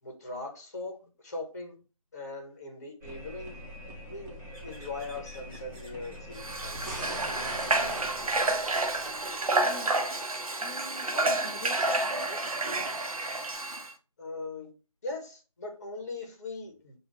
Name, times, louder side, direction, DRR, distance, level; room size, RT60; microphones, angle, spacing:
voice 1, 0.0-1.0 1.2-1.7 2.1-3.6 4.1-6.8 14.2-14.7 15.0-17.0, left 3 dB, 30° left, 0.9 m, -40 dB
sound 1, 3.0-9.8, equal, 30° right, 1.1 m, -43 dB
sound 2, 4.5-13.5, equal, 5° right, 2.0 m, -55 dB
Water / Water tap faucet, 6.4-13.9, right 2 dB, 80° right, 0.8 m, -29 dB
voice 2, 9.6-10.1 10.6-12.5, left 2 dB, 60° left, 0.7 m, -43 dB
5.0 x 2.4 x 3.4 m
figure-of-eight pair, 165°, 18 cm